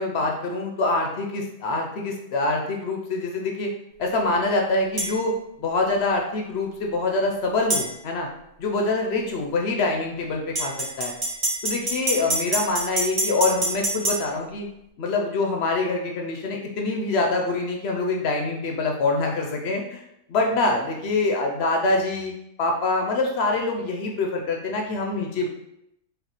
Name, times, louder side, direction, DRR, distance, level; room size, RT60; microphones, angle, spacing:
voice 1, 0.0-3.7 4.0-8.3 8.6-10.7 11.0-11.1 11.6-14.7 15.0-20.0 20.3-22.3 22.6-25.5, left 2 dB, 65° left, 1 dB, 0.7 m, -25 dB
sound 1, 5.0-5.1 7.7-7.9 10.6-14.2, right 2 dB, 30° right, 1.0 m, -25 dB
5.0 x 2.5 x 3.0 m, 0.81 s
omnidirectional pair, 1.5 m